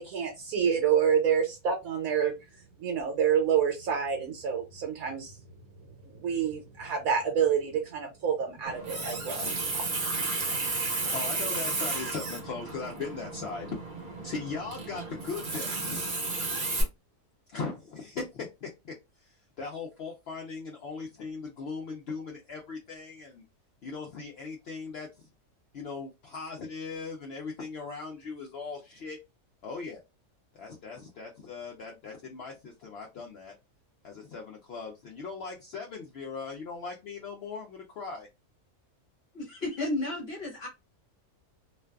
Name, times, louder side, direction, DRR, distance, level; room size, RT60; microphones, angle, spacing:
voice 1, 0.0-2.3 2.8-5.4 6.2-10.9, right 7 dB, 75° right, 2 dB, 1.1 m, -28 dB
Water tap faucet, 8.7-16.8, right 3 dB, 40° right, 0.8 m, -33 dB
voice 2, 11.1-13.8 14.2-16.1 17.5-23.4 23.8-25.3 25.7-29.2 29.6-30.0 30.5-33.5 34.0-38.3, left 4 dB, 75° left, 0 dB, 0.5 m, -39 dB
voice 3, 39.3-40.7, left 2 dB, 50° left, -1 dB, 0.9 m, -32 dB
2.5 x 2.3 x 2.2 m, 0.24 s
omnidirectional pair, 1.6 m